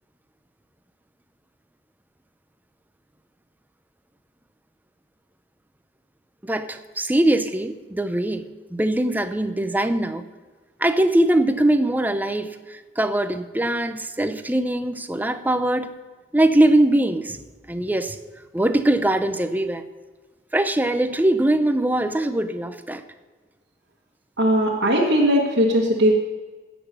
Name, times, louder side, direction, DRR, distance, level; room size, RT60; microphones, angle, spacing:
voice 1, 6.4-10.2 10.8-16.0 16.3-17.4 17.7-18.2 18.5-19.9 20.5-23.0, right 1 dB, 10° right, 10 dB, 0.6 m, -22 dB
voice 2, 24.4-26.1, equal, 70° right, -4 dB, 1.5 m, -19 dB
16.0 x 6.1 x 6.6 m, 1.4 s
head